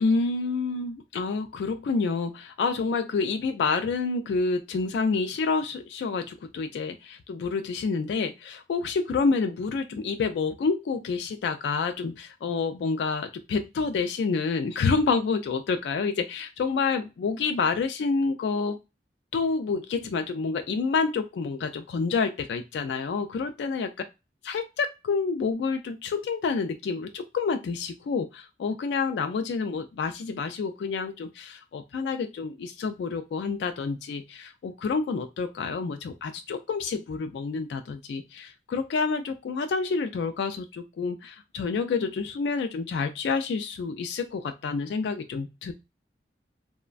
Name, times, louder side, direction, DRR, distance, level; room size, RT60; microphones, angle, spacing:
voice 1, 0.0-18.8 19.3-23.9 24.5-45.7, left 4 dB, 80° left, 7 dB, 0.3 m, -28 dB
3.0 x 2.1 x 2.4 m, 0.25 s
head